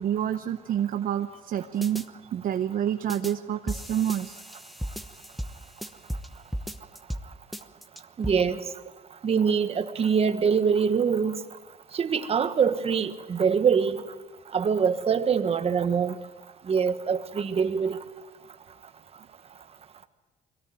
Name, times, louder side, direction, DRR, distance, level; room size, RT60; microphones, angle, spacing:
voice 1, 0.0-2.0 2.3-4.4, right 10 dB, 55° right, 0.9 m, -28 dB
sound 1, 1.8-2.1 3.1-3.3 3.7-6.3 6.5-7.3 7.5-8.3, equal, ahead, 1.1 m, -35 dB
voice 2, 8.2-8.6 9.2-11.4 11.9-14.0 14.5-16.2 16.7-18.0, right 6 dB, 35° right, 1.4 m, -24 dB
22.5 x 17.5 x 9.3 m
cardioid pair, 110°, 17 cm